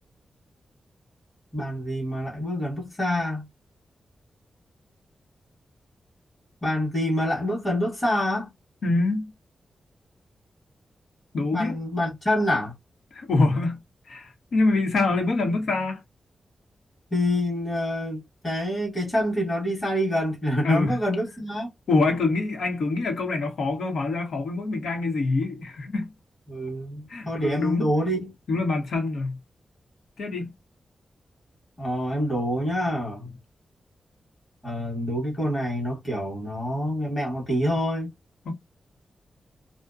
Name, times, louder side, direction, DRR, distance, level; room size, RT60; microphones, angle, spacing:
voice 1, 1.5-3.5 6.6-8.5 11.5-12.7 17.1-21.7 26.5-28.3 31.8-33.4 34.6-38.1, equal, 20° left, 1.0 m, -26 dB
voice 2, 8.8-9.3 11.3-11.8 13.1-13.8 14.1-16.0 20.6-21.0 21.9-26.1 27.1-27.9 28.5-29.4 30.2-30.5 38.4-38.5, left 3 dB, 80° left, 0.9 m, -25 dB
2.5 x 2.1 x 2.3 m
wide cardioid pair, 170°, 0 cm